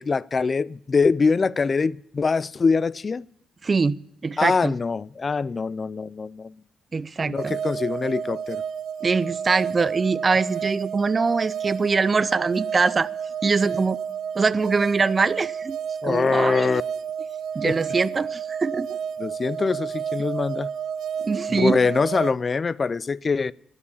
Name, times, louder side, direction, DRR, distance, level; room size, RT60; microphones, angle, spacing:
voice 1, 0.0-3.3 4.4-6.6 7.2-8.6 16.0-16.8 17.6-17.8 19.2-20.7 21.5-23.5, left 4 dB, 35° left, 0.4 m, -23 dB
voice 2, 3.6-4.7 6.9-7.6 9.0-13.1 13.4-14.0 14.3-15.8 16.0-16.7 17.5-18.9 21.2-21.8, right 4 dB, 30° right, 0.6 m, -23 dB
sound 1, 7.4-22.3, right 8 dB, 75° right, 0.7 m, -31 dB
12.5 x 9.8 x 7.3 m
cardioid pair, 90°, 0 cm